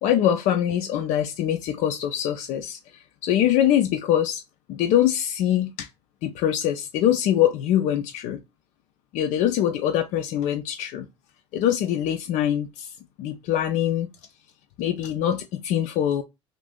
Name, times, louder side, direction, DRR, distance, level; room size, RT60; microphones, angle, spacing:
voice 1, 0.0-4.4 4.7-5.9 6.2-8.4 9.1-11.1 11.5-12.9 13.2-14.1 14.8-16.2, left 11 dB, 60° left, 0.4 m, -23 dB
2.6 x 2.6 x 3.4 m
hypercardioid pair, 65°, 15 cm